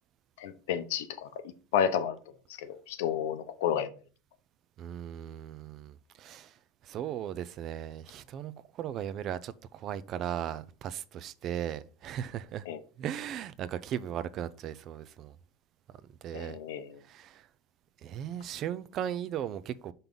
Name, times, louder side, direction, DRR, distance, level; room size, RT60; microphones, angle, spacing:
voice 1, 0.4-1.3 1.7-2.2 2.6-3.9 12.7-12.8 16.3-16.9, left 8 dB, 75° left, 0.8 m, -31 dB
voice 2, 4.8-6.5 6.8-8.5 8.8-12.7 13.0-15.3 16.2-16.6 17.1-17.4 18.0-19.9, right 10 dB, 35° right, 0.4 m, -37 dB
5.9 x 5.3 x 3.8 m
supercardioid pair, 160°, 0 cm